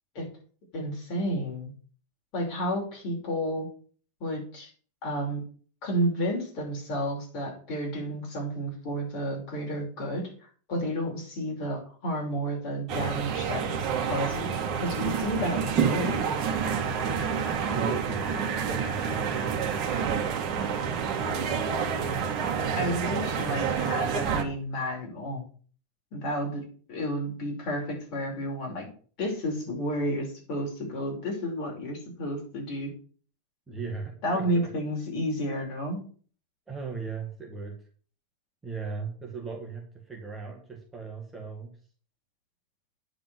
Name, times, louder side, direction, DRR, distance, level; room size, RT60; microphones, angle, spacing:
voice 1, 0.7-1.7 2.3-3.7 4.2-4.7 5.0-5.4 5.8-10.3 10.7-16.3 22.8-25.4 26.1-28.9 29.2-32.9 34.2-36.0, equal, 40° left, -1 dB, 5.5 m, -31 dB
sound 1, 12.9-24.4, right 6 dB, 30° right, 2.2 m, -28 dB
voice 2, 17.4-18.4 18.6-20.0 33.7-34.7 36.7-37.8 38.6-41.7, right 4 dB, 10° right, -2 dB, 1.9 m, -38 dB
9.8 x 5.2 x 7.7 m, 0.44 s
supercardioid pair, 160°, 0 cm